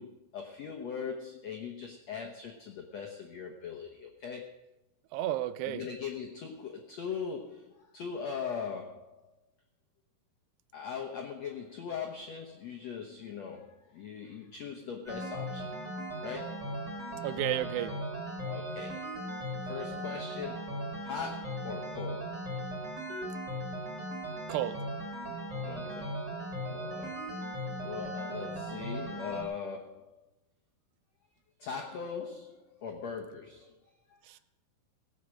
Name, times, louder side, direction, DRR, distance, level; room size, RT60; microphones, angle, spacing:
voice 1, 0.0-4.6 5.7-9.2 10.7-15.7 16.2-16.6 18.4-19.1 19.6-22.4 25.6-26.1 26.6-27.3 27.7-30.2 31.6-33.7 34.1-34.2, left 6 dB, 75° left, 2 dB, 1.5 m, -40 dB
voice 2, 5.1-5.9 17.2-18.0 24.5-24.8 34.3-34.4, right 13 dB, 85° right, 14 dB, 2.8 m, -32 dB
sound 1, 15.1-29.4, equal, 25° right, 3.4 m, -38 dB
17.5 x 8.4 x 6.3 m, 0.89 s
omnidirectional pair, 4.7 m